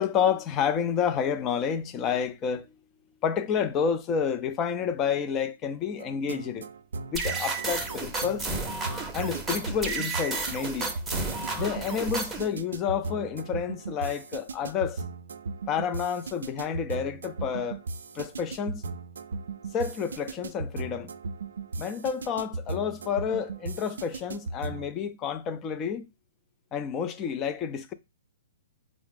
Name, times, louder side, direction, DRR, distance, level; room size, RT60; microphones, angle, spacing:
voice 1, 0.0-2.8 3.2-6.7 7.1-8.5 9.1-10.9 11.6-15.0 15.7-17.8 18.1-18.8 19.7-21.1 21.8-26.1 26.7-27.9, left 7 dB, 25° left, 0.4 m, -29 dB
sound 1, 6.0-24.9, right 3 dB, 80° right, 0.4 m, -37 dB
sound 2, 7.1-12.5, right 3 dB, 10° right, 0.7 m, -32 dB
4.7 x 2.0 x 3.5 m
hypercardioid pair, 135°, 0 cm